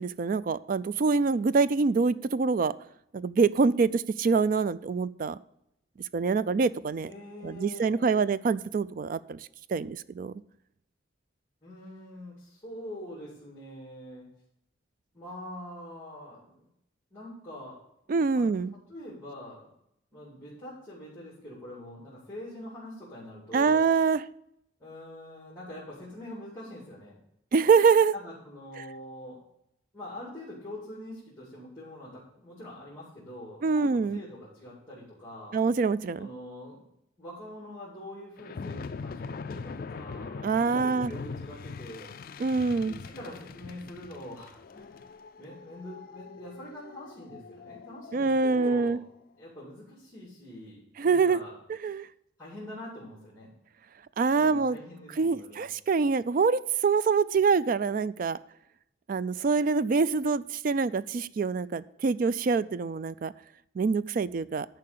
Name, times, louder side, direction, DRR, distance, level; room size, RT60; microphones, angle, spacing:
voice 1, 0.0-2.7 3.1-5.4 6.1-7.1 7.4-9.4 9.7-10.4 18.1-18.7 23.5-24.2 27.5-28.1 33.6-34.2 35.5-36.3 40.4-41.1 42.4-43.0 48.1-49.0 51.0-51.4 51.8-52.1 54.2-54.8 55.2-58.4 59.1-63.3 63.8-64.7, right 4 dB, 45° right, 17 dB, 0.3 m, -25 dB
voice 2, 7.0-8.3 11.6-14.3 15.1-16.7 17.1-17.8 18.3-18.5 18.9-19.7 20.1-23.9 24.8-27.2 28.1-29.4 29.9-35.6 36.2-36.8 37.2-42.1 42.9-45.1 45.4-49.0 49.4-51.6 52.4-53.5 54.3-55.6, left 1 dB, 15° left, -7 dB, 2.5 m, -44 dB
sound 1, 38.4-49.0, left 4 dB, 45° left, 0.4 m, -42 dB
10.5 x 4.7 x 6.7 m, 0.77 s
head